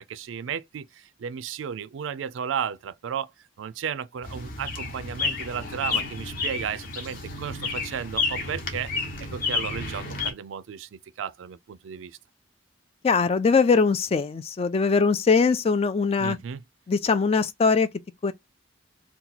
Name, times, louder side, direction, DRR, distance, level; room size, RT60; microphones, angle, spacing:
voice 1, 0.0-3.3 3.6-8.9 9.2-12.2 16.2-16.6, right 7 dB, 80° right, 0.4 m, -34 dB
sound 1, 4.2-10.3, left 4 dB, 50° left, 0.9 m, -31 dB
voice 2, 13.0-16.4 16.9-17.9 18.2-18.3, left 5 dB, 30° left, 0.3 m, -21 dB
2.9 x 2.2 x 3.9 m
head